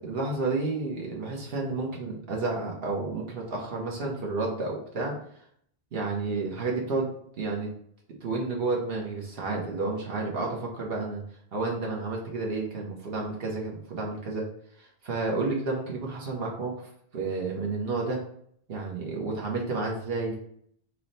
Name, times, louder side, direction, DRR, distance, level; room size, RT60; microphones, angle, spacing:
voice 1, 0.0-5.1 5.9-7.1 7.4-7.7 8.2-11.2 11.5-14.5 14.8-18.2 18.7-20.4, right 3 dB, 70° right, -2 dB, 1.1 m, -31 dB
4.5 x 2.1 x 3.9 m, 0.66 s
omnidirectional pair, 1.0 m